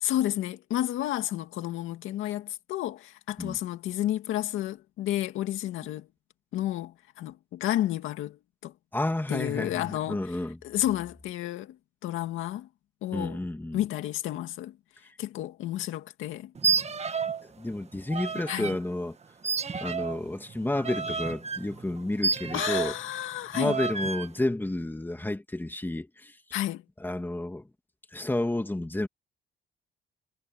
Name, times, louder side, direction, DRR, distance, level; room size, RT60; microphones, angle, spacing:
voice 1, 0.0-6.1 6.5-8.7 9.3-10.2 10.6-11.8 12.0-12.7 13.0-13.4 13.7-14.8 15.2-16.5 18.5-18.8 22.5-23.7 26.5-26.8, left 13 dB, 90° left, 2.2 m, -31 dB
voice 2, 8.9-10.6 13.1-13.8 17.6-19.2 19.8-22.9 23.5-26.4 27.0-27.7 28.1-29.1, left 1 dB, 10° left, 2.5 m, -31 dB
sound 1, 16.5-17.4 17.7-18.8 19.4-23.0 23.5-24.3, right 5 dB, 35° right, 1.6 m, -30 dB
cardioid pair, 90°, 20 cm